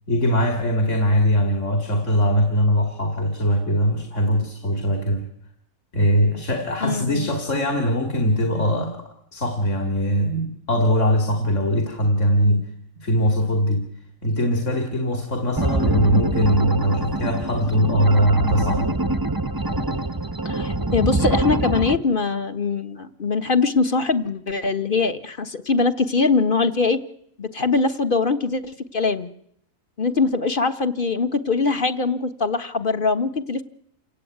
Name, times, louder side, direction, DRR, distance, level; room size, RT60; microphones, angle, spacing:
voice 1, 0.1-5.2 5.9-12.7 13.0-13.9 14.2-18.9, equal, 60° left, 4 dB, 3.0 m, -21 dB
voice 2, 6.8-7.3 20.4-27.0 27.4-29.3 30.0-33.6, left 4 dB, 40° left, 8 dB, 1.5 m, -22 dB
sound 1, 15.6-22.0, right 2 dB, 20° right, 0.8 m, -24 dB
28.5 x 17.0 x 9.4 m, 0.72 s
omnidirectional pair, 1.5 m